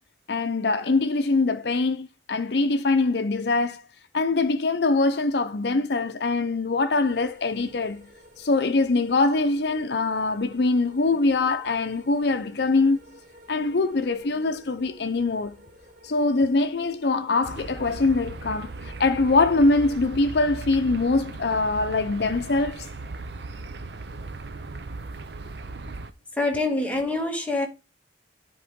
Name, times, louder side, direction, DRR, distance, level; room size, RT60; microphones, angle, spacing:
voice 1, 0.3-3.8 4.1-8.1 8.4-13.0 13.5-15.6 16.0-22.9, left 3 dB, 65° left, 0.6 m, -23 dB
sound 1, 7.0-20.1, equal, 45° right, 1.7 m, -52 dB
sound 2, 17.4-26.1, right 3 dB, 70° right, 0.8 m, -38 dB
voice 2, 26.3-27.7, left 2 dB, 10° left, 1.6 m, -25 dB
10.5 x 4.7 x 3.6 m
head